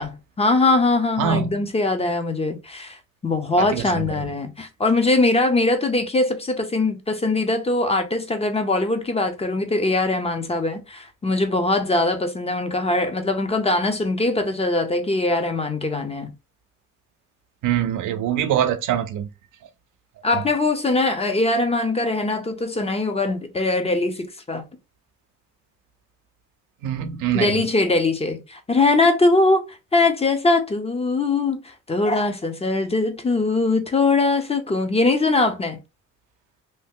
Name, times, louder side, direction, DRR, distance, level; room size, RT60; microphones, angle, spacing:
voice 1, 0.0-3.0 3.2-16.3 20.2-24.6 27.3-35.8, left 2 dB, 20° left, 0.6 m, -21 dB
voice 2, 1.2-1.7 3.6-4.2 17.6-19.3 20.3-20.4 26.8-27.6, right 9 dB, 85° right, 0.6 m, -24 dB
2.7 x 2.1 x 3.5 m
cardioid pair, 90°, 30 cm